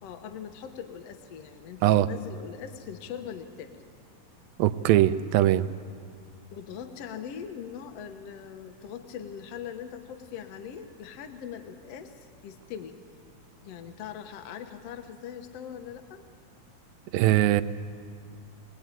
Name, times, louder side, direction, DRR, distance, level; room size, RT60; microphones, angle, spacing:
voice 1, 0.0-3.8 6.5-13.0 13.6-16.2, left 8 dB, 65° left, 7 dB, 1.6 m, -41 dB
voice 2, 4.6-5.7 17.1-17.6, right 13 dB, 85° right, 12 dB, 2.5 m, -21 dB
22.0 x 20.5 x 9.1 m, 2.3 s
omnidirectional pair, 4.1 m